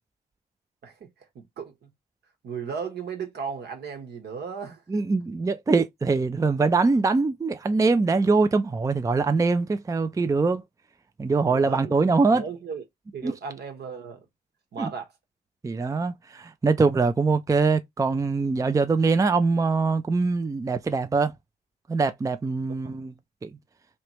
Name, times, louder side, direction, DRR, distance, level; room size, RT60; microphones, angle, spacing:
voice 1, 0.8-1.9 2.4-5.0 11.4-12.8 13.1-14.3 14.7-15.1 22.7-23.0, right 6 dB, 70° right, 1.3 m, -36 dB
voice 2, 4.9-10.6 11.2-12.4 13.2-13.3 14.8-14.9 15.6-21.3 21.9-23.1 23.4-23.6, right 4 dB, 20° right, 0.4 m, -23 dB
3.2 x 2.9 x 3.0 m
cardioid pair, 65°, 18 cm